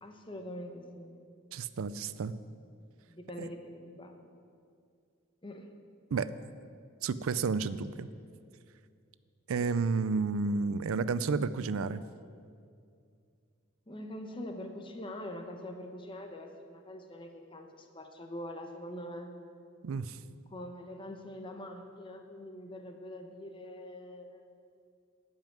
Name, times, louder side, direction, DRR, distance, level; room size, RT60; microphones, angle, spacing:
voice 1, 0.0-1.3 3.1-4.3 5.4-5.7 13.9-19.3 20.5-24.6, left 1 dB, 25° left, 5 dB, 0.9 m, -44 dB
voice 2, 1.5-2.3 3.4-3.5 6.1-6.3 7.0-8.1 9.5-12.0 19.8-20.2, right 4 dB, 85° right, 15 dB, 0.4 m, -31 dB
12.0 x 5.6 x 9.2 m, 2.3 s
head